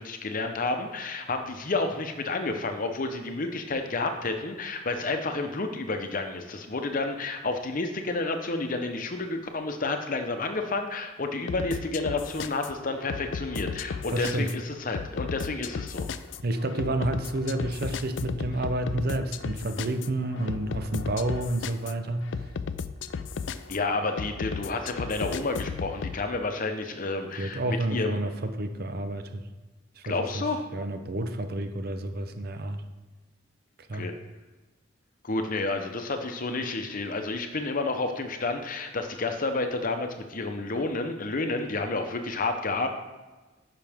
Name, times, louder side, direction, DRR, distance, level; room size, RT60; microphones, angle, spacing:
voice 1, 0.0-16.1 23.7-28.2 30.0-30.6 33.9-34.1 35.2-42.9, left 3 dB, 45° left, 6 dB, 0.8 m, -30 dB
sound 1, 11.5-26.2, left 5 dB, 70° left, 0.4 m, -35 dB
voice 2, 14.1-14.5 16.4-22.3 27.4-29.5 30.0-30.5 30.7-32.8 33.9-34.1, right 1 dB, 55° right, 8 dB, 0.8 m, -30 dB
11.0 x 5.9 x 3.5 m, 1.2 s
head